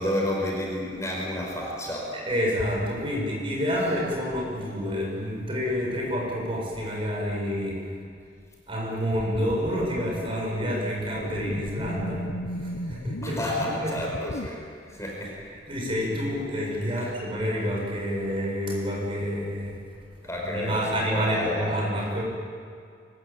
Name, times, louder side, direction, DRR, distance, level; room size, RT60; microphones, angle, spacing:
voice 1, 0.0-2.2 13.2-15.4 17.0-17.2 20.2-21.8, left 1 dB, 15° left, -2 dB, 4.9 m, -31 dB
voice 2, 2.1-7.9 8.7-13.9 15.5-19.8 20.3-22.2, equal, 30° right, -2 dB, 7.3 m, -28 dB
sound 1, 9.1-14.5, left 1 dB, 75° left, 1.0 m, -36 dB
24.5 x 22.5 x 8.8 m, 2.2 s
head